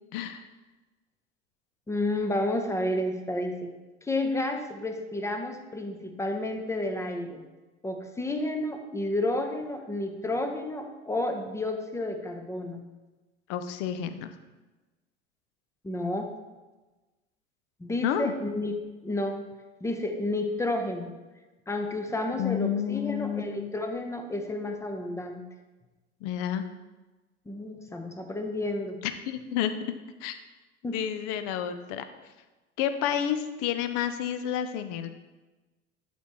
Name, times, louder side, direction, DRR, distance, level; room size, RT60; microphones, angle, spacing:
voice 1, 0.1-0.4 13.5-14.3 18.0-18.3 22.4-23.7 26.2-26.6 29.0-29.8 30.2-30.4 30.8-32.1 32.8-35.1, left 9 dB, 45° left, 10 dB, 0.7 m, -30 dB
voice 2, 1.9-3.7 4.0-7.4 7.8-12.8 15.8-16.3 17.8-18.7 19.0-19.4 19.8-21.1 21.7-25.4 27.5-29.0 30.8-31.0, left 1 dB, 10° left, 5 dB, 0.8 m, -31 dB
11.5 x 4.3 x 3.1 m, 1.2 s
figure-of-eight pair, 75°, 35 cm